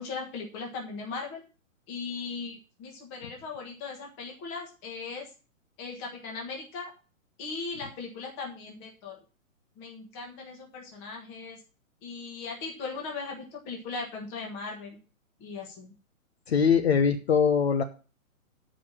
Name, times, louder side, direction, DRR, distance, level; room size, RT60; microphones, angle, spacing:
voice 1, 0.0-1.4 1.9-5.3 5.8-6.9 7.4-9.2 9.8-11.6 12.0-15.0 15.4-15.9, left 4 dB, 15° left, 1 dB, 1.4 m, -38 dB
voice 2, 16.5-17.8, left 6 dB, 50° left, 7 dB, 0.9 m, -22 dB
9.2 x 5.1 x 7.1 m, 0.35 s
hypercardioid pair, 170°, 42 cm